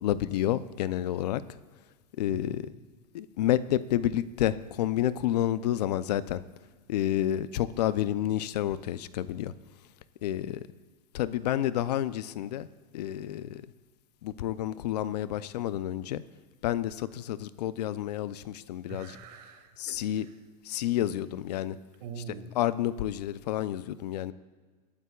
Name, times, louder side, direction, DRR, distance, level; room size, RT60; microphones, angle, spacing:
voice 1, 0.0-1.4 2.2-2.7 3.1-6.4 6.9-9.5 10.2-10.6 11.1-12.7 12.9-13.6 14.2-16.2 16.6-19.1 19.8-20.3 20.7-21.8 22.6-24.3, left 12 dB, 80° left, 15 dB, 0.6 m, -29 dB
voice 2, 2.3-2.7 18.9-20.4 22.0-22.6, right 6 dB, 75° right, 6 dB, 2.1 m, -44 dB
23.5 x 12.0 x 2.4 m, 1.4 s
supercardioid pair, 115°, 20 cm